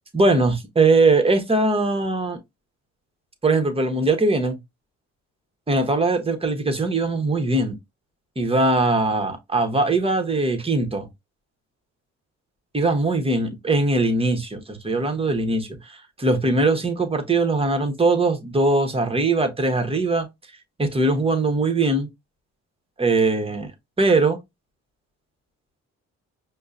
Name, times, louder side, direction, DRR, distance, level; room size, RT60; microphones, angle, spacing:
voice 1, 0.1-2.4 3.4-4.6 5.7-7.8 8.4-11.1 12.7-20.3 20.8-22.1 23.0-23.7 24.0-24.4, right 2 dB, 20° right, 1.0 m, -21 dB
5.3 x 2.2 x 2.4 m
cardioid pair, 90°, 30 cm